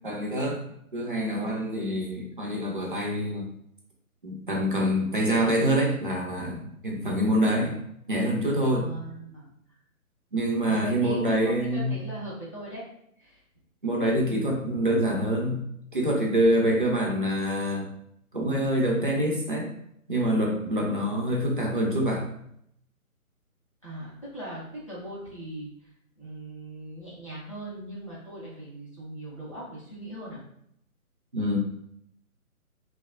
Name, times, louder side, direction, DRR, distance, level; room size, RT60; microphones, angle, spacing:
voice 1, 0.0-0.6 0.9-3.5 4.2-7.8 8.1-8.9 10.3-12.0 13.8-15.6 15.9-17.9 18.3-19.7 20.1-22.3 31.3-31.6, equal, 40° right, -2 dB, 0.4 m, -26 dB
voice 2, 8.6-9.5 10.6-12.8 13.2-13.4 23.8-25.7 26.2-30.4, right 1 dB, 25° left, -8 dB, 0.5 m, -40 dB
2.7 x 2.0 x 2.5 m, 0.71 s
figure-of-eight pair, 145°, 43 cm